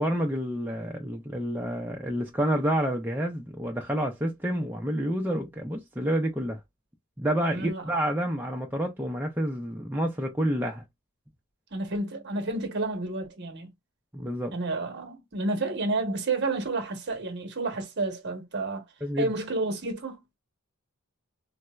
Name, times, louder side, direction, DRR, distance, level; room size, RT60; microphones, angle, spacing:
voice 1, 0.0-6.6 7.2-10.8 14.1-14.6 19.0-19.3, equal, 10° right, 0.5 m, -29 dB
voice 2, 7.5-7.8 11.7-13.7 14.5-18.8 19.2-20.4, right 2 dB, 50° right, 1.0 m, -30 dB
4.2 x 2.1 x 2.3 m
head